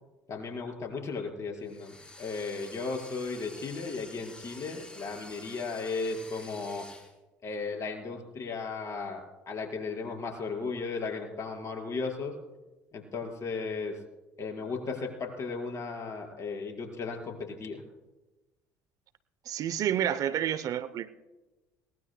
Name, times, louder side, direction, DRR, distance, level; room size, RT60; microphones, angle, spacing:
voice 1, 0.3-6.8 7.4-12.3 12.9-13.9 14.4-17.8, left 4 dB, 40° left, 1 dB, 4.7 m, -35 dB
sound 1, 1.6-7.1, left 2 dB, 15° left, 4.4 m, -49 dB
voice 2, 19.5-21.1, right 10 dB, 50° right, 15 dB, 0.7 m, -29 dB
22.0 x 19.5 x 2.2 m, 1.1 s
hypercardioid pair, 70°, 8 cm